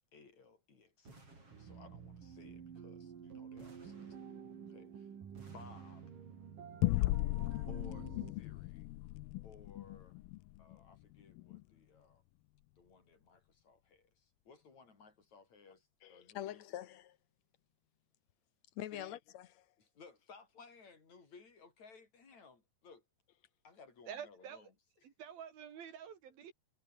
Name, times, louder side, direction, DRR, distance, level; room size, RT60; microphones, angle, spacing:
voice 1, 0.1-1.3 1.6-4.2 4.7-5.1 5.5-6.1 7.7-8.1 8.4-8.9 9.4-10.2 10.6-12.2 12.8-16.6 18.9-19.2 19.8-23.0 23.6-24.7, left 5 dB, 50° left, 6.5 m, -59 dB
sound 1, 1.0-2.3 3.6-4.8 5.3-6.5, right 2 dB, 40° right, 9.0 m, -60 dB
sound 2, 1.5-8.3, right 7 dB, 65° right, 4.6 m, -50 dB
sound 3, 6.8-11.6, left 19 dB, 85° left, 2.6 m, -37 dB
voice 2, 16.0-17.2 18.8-19.7, left 12 dB, 70° left, 1.8 m, -45 dB
voice 3, 24.1-24.7 25.0-26.5, right 8 dB, 80° right, 4.7 m, -48 dB
omnidirectional pair, 4.2 m